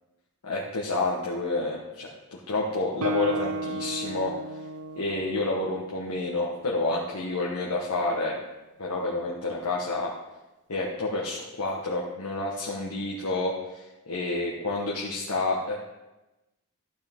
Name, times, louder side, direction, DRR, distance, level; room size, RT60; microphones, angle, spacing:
voice 1, 0.4-4.3 5.0-8.4 8.8-10.1 10.7-15.8, left 2 dB, 85° left, -3 dB, 1.3 m, -29 dB
Guitar, 3.0-6.7, right 2 dB, 75° right, 0.6 m, -34 dB
12.0 x 8.3 x 3.6 m, 1.0 s
head